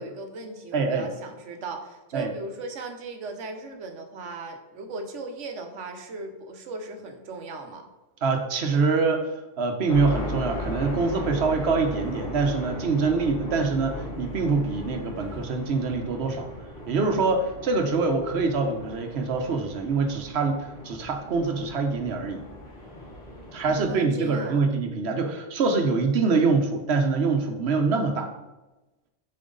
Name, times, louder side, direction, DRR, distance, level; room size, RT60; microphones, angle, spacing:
voice 1, 0.0-7.9 23.7-24.6, right 3 dB, 90° right, 5 dB, 1.2 m, -37 dB
voice 2, 0.7-1.1 2.1-2.3 8.2-9.3 9.6-16.5 16.9-22.4 23.5-28.3, right 4 dB, 65° right, 5 dB, 1.1 m, -25 dB
sound 1, 9.9-23.9, left 1 dB, 60° left, 2.4 m, -37 dB
7.7 x 4.4 x 3.8 m, 1.1 s
omnidirectional pair, 1.2 m